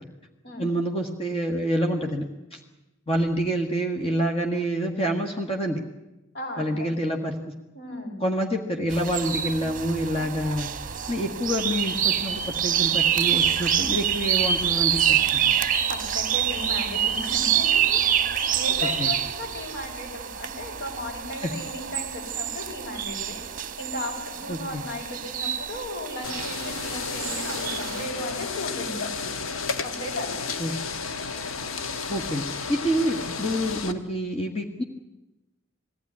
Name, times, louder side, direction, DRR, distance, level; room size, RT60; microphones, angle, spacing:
voice 1, 0.6-2.3 2.5-2.6 3.1-5.8 6.6-7.3 8.2-10.7 11.1-15.5 19.0-19.1 21.4-21.5 24.5-24.8 30.6-30.7 32.1-32.4 32.7-34.8, equal, 30° left, 2 dB, 1.5 m, -27 dB
voice 2, 6.3-6.9 7.7-8.2 15.7-18.0 18.5-23.4 23.8-29.3 29.8-30.4, left 1 dB, 55° left, 0 dB, 6.4 m, -35 dB
sound 1, 8.9-28.1, right 9 dB, 40° right, 1.0 m, -26 dB
sound 2, 26.2-33.9, left 5 dB, 85° left, 1.3 m, -32 dB
21.0 x 15.5 x 9.7 m, 1.0 s
head